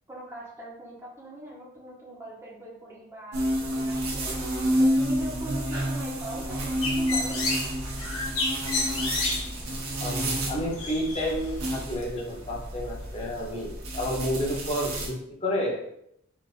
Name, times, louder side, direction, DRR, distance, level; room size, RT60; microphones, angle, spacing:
voice 1, 0.1-4.4 4.8-7.4, right 1 dB, 10° right, -6 dB, 0.7 m, -42 dB
sound 1, 3.3-15.1, equal, 90° right, 0.8 m, -30 dB
Bird, 6.4-11.8, left 3 dB, 80° left, 0.7 m, -32 dB
voice 2, 10.0-15.9, equal, 30° left, -3 dB, 0.7 m, -30 dB
3.9 x 2.4 x 2.4 m, 0.75 s
head